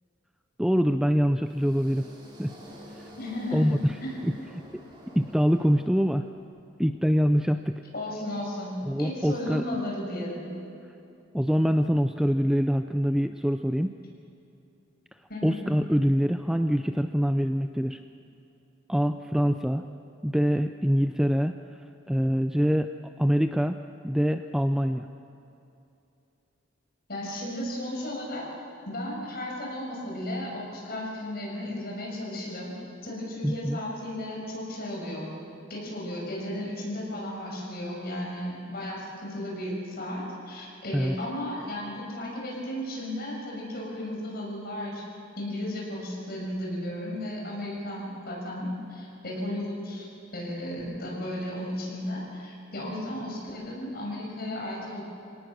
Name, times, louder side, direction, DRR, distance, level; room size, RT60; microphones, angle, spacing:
voice 1, 0.6-2.1 2.4-2.5 3.5-4.0 4.2-4.3 4.7-4.8 5.2-6.3 6.8-7.8 8.9-9.6 11.3-14.0 15.4-18.0 18.9-19.8 20.2-21.5 22.1-22.9 23.2-23.8 24.0-25.1 33.4-33.8 40.9-41.2, equal, 5° right, 8 dB, 0.4 m, -24 dB
sound 1, 1.3-6.5, equal, 25° right, 4.1 m, -48 dB
voice 2, 3.2-3.7 4.0-4.2 7.9-10.5 15.3-15.7 27.1-28.5 28.9-32.7 33.0-35.3 35.7-45.0 45.4-50.1 50.3-55.0, left 1 dB, 50° left, -2 dB, 6.3 m, -34 dB
26.5 x 18.0 x 6.4 m, 2.8 s
head